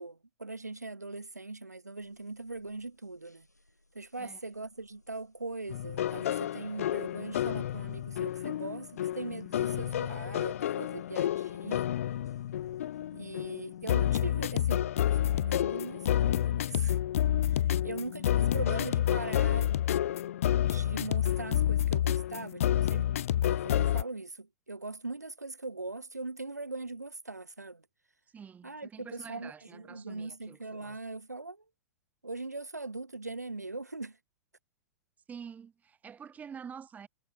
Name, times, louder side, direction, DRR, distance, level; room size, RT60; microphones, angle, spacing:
voice 1, 0.0-3.5 3.9-11.9 13.1-17.0 17.8-19.8 20.6-23.1 23.5-27.8 28.6-31.6 32.2-34.2, right 3 dB, 90° right, 0.4 m, -41 dB
sound 1, 2.0-14.0, left 2 dB, 85° left, 5.8 m, -68 dB
sound 2, 5.7-24.0, left 11 dB, 55° left, 0.4 m, -29 dB
voice 2, 28.3-31.0 35.3-37.1, right 7 dB, 20° right, 3.0 m, -47 dB
figure-of-eight pair, 95°, 9 cm